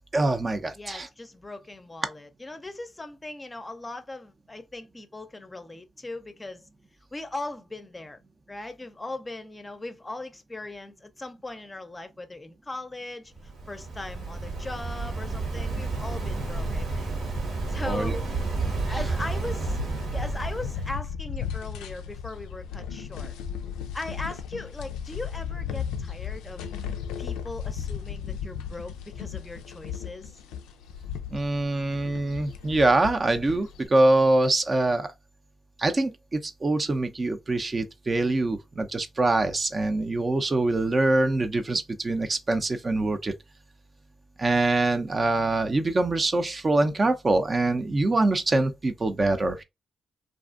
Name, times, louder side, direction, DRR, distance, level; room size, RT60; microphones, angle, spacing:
voice 1, 0.1-1.1 17.8-18.2 31.3-35.1 35.8-43.3 44.4-49.6, right 2 dB, 40° right, 0.5 m, -24 dB
voice 2, 0.7-6.6 7.1-8.2 8.5-17.1 17.7-18.2 18.6-19.8 20.1-23.3 23.9-26.7 27.2-30.4, left 2 dB, 25° left, 0.5 m, -39 dB
Waves surf, 13.3-21.0, right 3 dB, 75° right, 1.0 m, -31 dB
sound 1, 19.7-33.9, left 7 dB, 85° left, 0.3 m, -36 dB
2.5 x 2.3 x 2.4 m
supercardioid pair, 45°, 0 cm